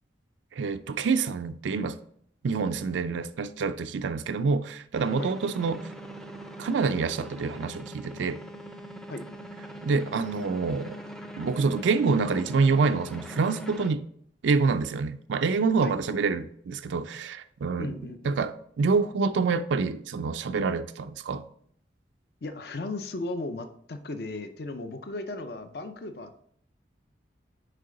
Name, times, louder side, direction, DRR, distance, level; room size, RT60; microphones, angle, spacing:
voice 1, 0.5-2.0 2.4-5.9 6.6-8.4 9.8-11.0 11.4-14.0 14.4-18.0 18.2-21.4, right 4 dB, 80° right, 0.4 m, -27 dB
sound 1, 4.9-13.9, right 1 dB, ahead, 0.4 m, -42 dB
voice 2, 17.8-18.4 22.4-26.4, left 2 dB, 55° left, 0.5 m, -36 dB
6.6 x 4.6 x 3.8 m
head